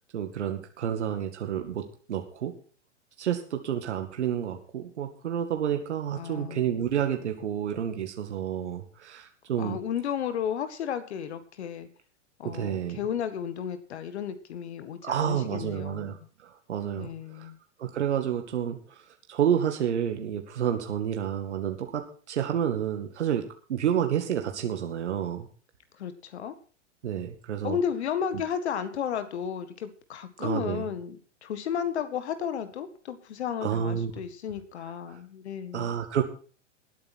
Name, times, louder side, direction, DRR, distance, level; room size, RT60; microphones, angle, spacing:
voice 1, 0.1-2.5 3.2-9.8 12.4-13.0 15.0-16.2 16.4-17.5 17.8-23.4 23.7-25.5 27.0-27.8 30.4-30.9 33.6-34.1 35.1-35.2 35.7-36.2, right 9 dB, 70° right, 5 dB, 2.2 m, -30 dB
voice 2, 6.1-7.0 9.6-11.9 12.4-16.2 17.0-17.6 26.0-26.5 27.6-35.9, left 8 dB, 65° left, 11 dB, 1.9 m, -33 dB
19.0 x 9.0 x 4.4 m, 0.39 s
figure-of-eight pair, 105°, 36 cm